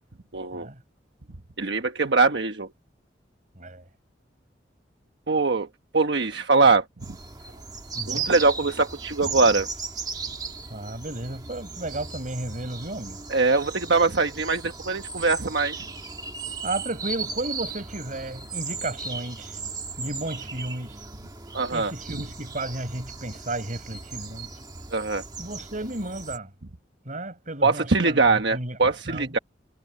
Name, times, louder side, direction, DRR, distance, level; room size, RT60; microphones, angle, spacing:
voice 1, 0.3-0.7 1.6-2.7 5.3-5.7 5.9-7.2 8.1-9.7 13.3-15.9 21.5-21.9 24.9-25.2 27.6-29.4, right 3 dB, 75° right, 1.2 m, -22 dB
sound 1, 7.0-26.4, right 4 dB, 25° right, 1.5 m, -37 dB
voice 2, 7.9-8.3 10.7-13.2 16.6-19.6 20.0-21.0 21.7-24.5 25.4-26.5 27.1-29.4, right 2 dB, 45° right, 5.6 m, -33 dB
head